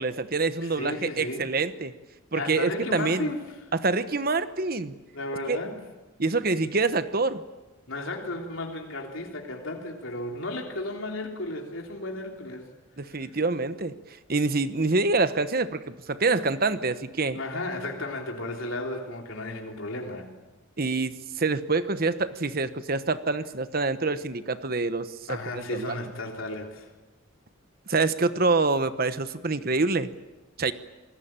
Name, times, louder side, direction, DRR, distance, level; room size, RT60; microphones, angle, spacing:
voice 1, 0.0-1.9 2.3-3.3 3.7-5.0 5.5-5.6 6.2-7.4 13.0-14.0 14.3-17.4 20.8-25.9 27.9-30.1 30.6-30.7, right 3 dB, 45° right, 12 dB, 1.1 m, -26 dB
voice 2, 0.6-1.5 2.3-3.4 5.1-5.8 7.9-12.7 13.1-13.3 17.3-20.3 25.3-26.9, left 2 dB, 75° left, 1 dB, 3.5 m, -34 dB
27.5 x 20.0 x 8.9 m, 1.2 s
head